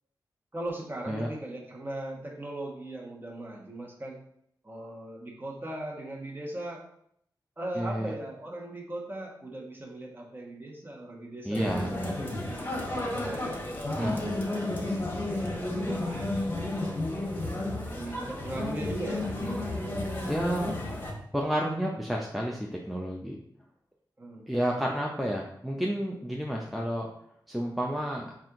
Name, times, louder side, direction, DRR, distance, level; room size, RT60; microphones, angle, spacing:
voice 1, 0.5-4.2 4.6-6.9 7.6-11.8 12.4-13.7 15.4-16.3 17.3-20.1 20.5-20.6 24.2-24.4, right 1 dB, 25° right, -1 dB, 1.1 m, -39 dB
voice 2, 7.8-8.1 11.4-12.2 14.0-14.4 20.3-20.7 21.3-23.4 24.5-27.1 27.5-28.3, equal, ahead, -1 dB, 0.5 m, -30 dB
sound 1, 11.5-21.1, left 1 dB, 25° left, 1.1 m, -32 dB
4.2 x 2.5 x 3.7 m, 0.70 s
cardioid pair, 50°, 8 cm